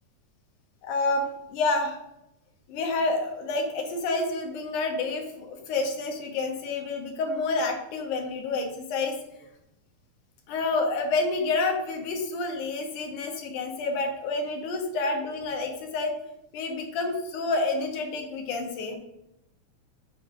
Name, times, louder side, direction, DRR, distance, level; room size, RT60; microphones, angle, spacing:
voice 1, 0.8-2.0 2.7-9.2 10.5-16.2 16.5-19.0, left 3 dB, 75° left, 3 dB, 2.4 m, -28 dB
6.8 x 4.9 x 3.7 m, 0.85 s
omnidirectional pair, 3.6 m